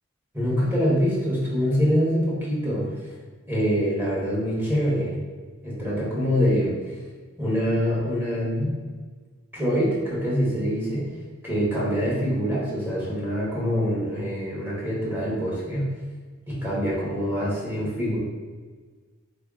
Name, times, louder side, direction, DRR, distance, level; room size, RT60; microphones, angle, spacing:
voice 1, 0.3-2.8 3.5-5.1 5.6-7.0 7.4-8.8 9.5-11.1 11.4-15.9 16.5-18.2, equal, 10° right, -7 dB, 1.5 m, -25 dB
4.0 x 3.3 x 3.7 m, 1.4 s
head